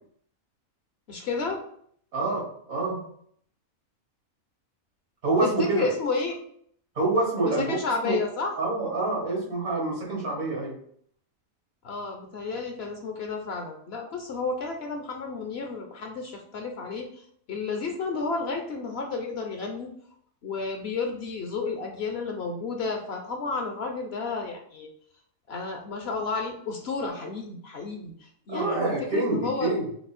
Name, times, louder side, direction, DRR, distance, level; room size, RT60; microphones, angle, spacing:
voice 1, 1.1-1.6 5.4-6.4 7.4-8.6 11.8-17.1 17.5-19.9 20.4-24.9 25.5-29.7, left 4 dB, 60° left, 3 dB, 0.7 m, -31 dB
voice 2, 2.1-3.0 5.2-5.9 7.0-7.7 8.0-8.2 8.6-10.7 28.5-29.9, right 2 dB, 85° right, -4 dB, 2.2 m, -26 dB
5.9 x 2.0 x 4.2 m, 0.64 s
omnidirectional pair, 1.4 m